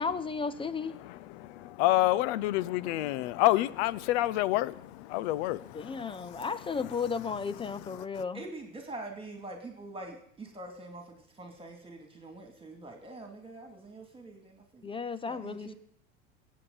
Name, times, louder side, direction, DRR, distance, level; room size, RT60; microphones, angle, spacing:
voice 1, 0.0-1.0 5.7-8.4 14.8-15.7, left 5 dB, 15° left, 0.5 m, -34 dB
voice 2, 0.9-6.5 6.8-6.9 7.6-8.2, left 16 dB, 55° left, 0.7 m, -29 dB
voice 3, 8.3-14.9 15.2-15.7, right 2 dB, 15° right, 2.5 m, -44 dB
21.5 x 8.4 x 4.0 m
hypercardioid pair, 85°, 39 cm